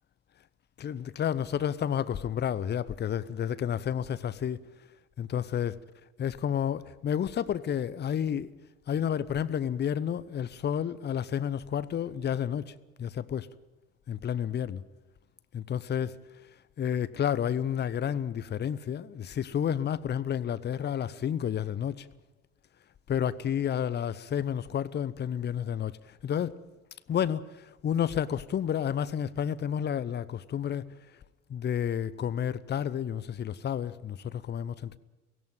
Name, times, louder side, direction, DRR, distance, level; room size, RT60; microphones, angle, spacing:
voice 1, 0.8-4.6 5.2-5.8 6.2-8.5 8.9-12.7 13.0-13.5 14.1-14.8 15.5-16.1 16.8-22.1 23.1-26.0 26.2-26.6 27.1-30.8 31.5-35.0, left 9 dB, 30° left, 0.8 m, -30 dB
17.5 x 17.0 x 9.1 m
figure-of-eight pair, 60°, 37 cm